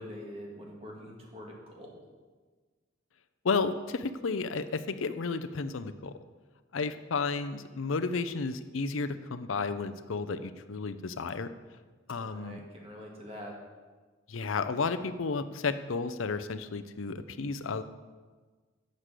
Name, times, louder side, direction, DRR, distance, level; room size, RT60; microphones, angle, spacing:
voice 1, 0.0-1.9 12.2-13.5, equal, 30° right, -2 dB, 2.1 m, -44 dB
voice 2, 3.4-6.1 6.7-11.5 12.1-12.6 14.3-17.8, left 4 dB, 85° left, 11 dB, 0.6 m, -32 dB
8.2 x 6.5 x 7.5 m, 1.4 s
head